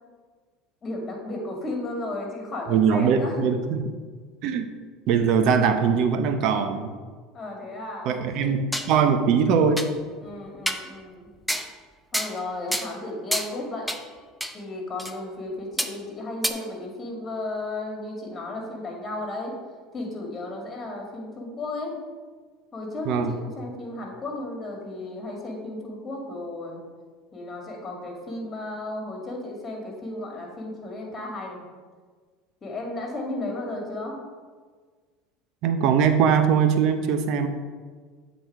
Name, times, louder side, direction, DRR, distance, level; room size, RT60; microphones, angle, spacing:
voice 1, 0.8-3.4 7.3-8.5 10.2-11.3 12.1-13.9 14.5-19.6 19.9-22.0 22.7-26.8 27.3-31.7 32.6-34.2, left 2 dB, 30° left, 0 dB, 2.1 m, -34 dB
voice 2, 2.7-3.9 4.4-4.7 5.1-6.9 8.1-9.8 23.1-23.3 35.6-37.5, right 6 dB, 60° right, 8 dB, 0.7 m, -21 dB
sound 1, 8.3-8.9 9.3-9.4 9.8-9.9 10.7-10.9 11.5-11.7 12.1-12.4 12.7-12.9 13.3-13.5 13.9-14.0 14.4-14.6 15.0-15.1 15.8-15.9 16.4-16.5, equal, ahead, 0.6 m, -28 dB
7.8 x 4.1 x 4.7 m, 1.5 s
hypercardioid pair, 90°, 0 cm